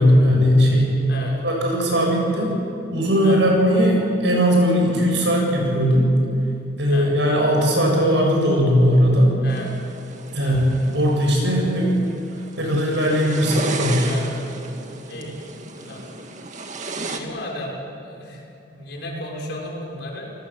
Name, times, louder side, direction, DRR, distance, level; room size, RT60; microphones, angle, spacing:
voice 1, 0.0-0.9 1.4-2.5 2.9-6.1 6.8-9.3 10.3-10.6 10.9-11.9 12.6-14.1, equal, 75° right, 0 dB, 7.7 m, -18 dB
sound 1, 9.5-17.2, right 3 dB, 45° right, 2.0 m, -35 dB
voice 2, 17.1-20.3, left 1 dB, 65° left, -1 dB, 6.3 m, -34 dB
30.0 x 19.5 x 7.6 m, 2.7 s
head